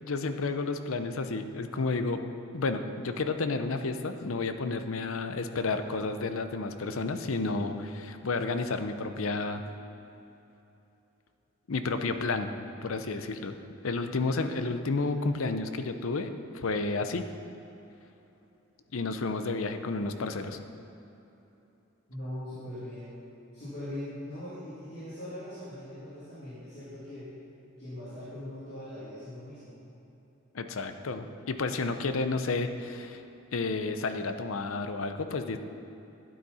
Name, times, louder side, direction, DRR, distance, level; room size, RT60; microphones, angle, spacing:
voice 1, 0.0-2.2 2.5-9.6 11.7-12.5 12.8-13.6 13.8-17.2 18.9-20.6 30.5-33.2 33.5-35.6, left 3 dB, 75° left, 8 dB, 0.6 m, -31 dB
voice 2, 22.1-23.2 23.5-27.3 27.8-29.8, left 1 dB, 55° left, -12 dB, 2.8 m, -41 dB
12.0 x 9.4 x 4.2 m, 3.0 s
head